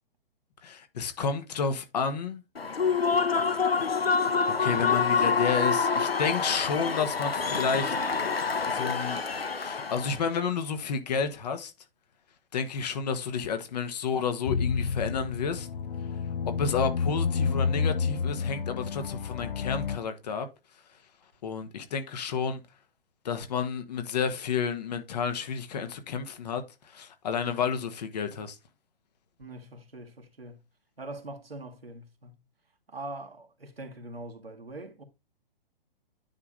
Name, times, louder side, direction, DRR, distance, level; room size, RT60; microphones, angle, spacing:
voice 1, 0.6-2.4 4.2-7.9 8.7-9.2 9.6-11.7 12.5-15.7 16.4-20.5 21.4-22.6 23.2-28.6, left 6 dB, 45° left, 1.5 m, -31 dB
Human voice / Cheering / Applause, 2.6-10.2, left 5 dB, 80° left, 1.0 m, -27 dB
sound 1, 14.5-20.0, left 5 dB, 60° left, 0.7 m, -29 dB
voice 2, 29.4-30.6 31.0-32.4 32.9-35.0, right 2 dB, 80° right, 1.9 m, -42 dB
9.7 x 3.7 x 5.2 m
figure-of-eight pair, 125°, 29 cm